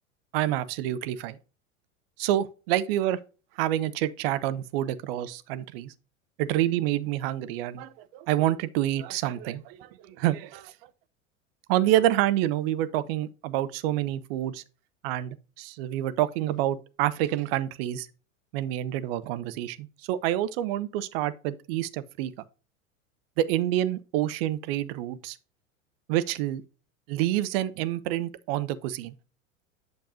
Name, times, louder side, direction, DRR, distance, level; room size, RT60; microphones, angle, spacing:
voice 1, 0.3-1.4 2.2-3.2 3.6-5.9 6.4-10.7 11.7-14.6 15.0-18.1 18.5-22.3 23.4-25.4 26.1-26.6 27.1-29.1, right 13 dB, 45° right, 0.8 m, -28 dB
8.0 x 6.6 x 2.6 m
figure-of-eight pair, 85°, 40 cm